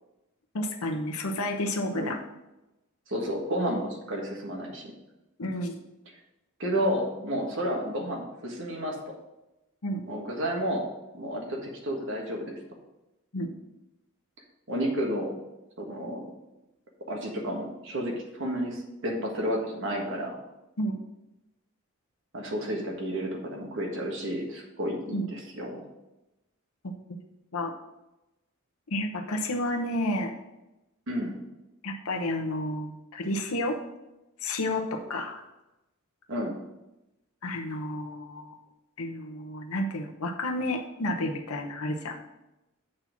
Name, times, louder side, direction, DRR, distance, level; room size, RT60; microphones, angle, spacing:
voice 1, 0.5-2.2 5.4-5.8 9.8-10.0 13.3-13.5 20.8-21.0 25.1-25.3 27.5-27.7 28.9-30.3 31.8-33.8 34.4-35.4 37.4-38.6 39.0-42.2, left 1 dB, 90° left, 2 dB, 1.0 m, -31 dB
voice 2, 3.1-4.8 6.6-9.1 10.0-10.8 11.1-12.5 14.7-15.3 15.8-16.2 17.1-20.4 22.3-25.8 31.1-31.3 36.3-36.5, equal, 60° right, 0 dB, 1.5 m, -31 dB
7.7 x 4.3 x 5.9 m, 0.95 s
head